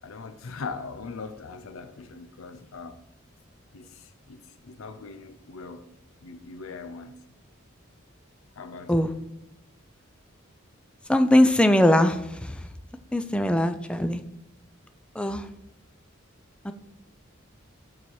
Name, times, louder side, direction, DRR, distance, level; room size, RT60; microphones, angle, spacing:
voice 1, 0.0-3.0 3.7-5.9 6.2-7.2 8.5-9.1, left 4 dB, 90° left, 0.5 m, -40 dB
voice 2, 11.1-12.6 13.1-14.2 15.2-15.5 16.6-16.7, left 1 dB, 5° left, 0.4 m, -21 dB
6.9 x 4.2 x 6.3 m
head